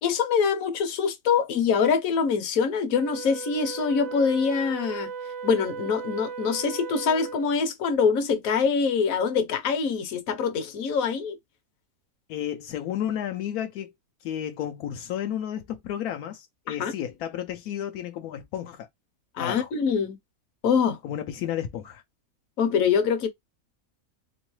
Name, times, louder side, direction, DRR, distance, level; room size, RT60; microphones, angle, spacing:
voice 1, 0.0-5.1 5.4-11.4 16.7-16.9 19.4-20.2 20.6-21.0 22.6-23.3, left 6 dB, 70° left, 1.2 m, -24 dB
Wind instrument woodwind instrument, 3.0-7.6, right 6 dB, 70° right, 1.0 m, -37 dB
voice 2, 12.3-13.9 14.2-18.9 19.4-19.7 21.0-22.0, left 10 dB, 85° left, 1.1 m, -32 dB
3.6 x 3.0 x 3.1 m
omnidirectional pair, 1.5 m